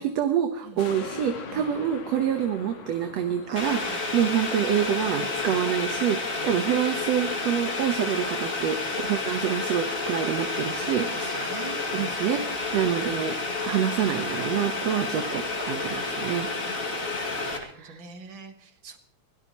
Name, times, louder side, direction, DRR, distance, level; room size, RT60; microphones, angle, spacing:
voice 1, 0.0-8.8 9.0-11.5 11.9-13.3 13.6-16.5 17.6-18.0, right 9 dB, 65° right, 5 dB, 2.1 m, -27 dB
sound 1, 0.8-7.4 7.9-8.0, left 6 dB, 70° left, 2.9 m, -43 dB
voice 2, 3.5-4.3 5.4-5.6 6.3-6.5 10.9-12.2 17.0-19.0, right 4 dB, 45° right, 6 dB, 2.0 m, -45 dB
Boiling, 3.6-17.6, left 3 dB, 30° left, 2.5 m, -30 dB
24.5 x 17.0 x 3.0 m, 0.63 s
omnidirectional pair, 3.5 m